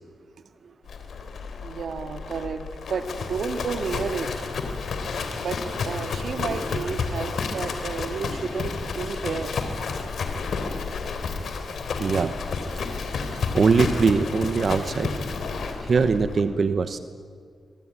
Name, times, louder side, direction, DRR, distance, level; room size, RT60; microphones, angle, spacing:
Livestock farm animals working animals, 0.9-16.4, left 4 dB, 70° left, 3.5 m, -31 dB
voice 1, 1.6-2.6 2.9-4.3 5.4-9.5, right 5 dB, 70° right, 7 dB, 2.0 m, -31 dB
voice 2, 12.0-12.4 13.2-15.1 15.8-17.0, right 5 dB, 50° right, 10 dB, 1.1 m, -22 dB
25.5 x 23.0 x 9.9 m, 2.1 s
cardioid pair, 110°, 0 cm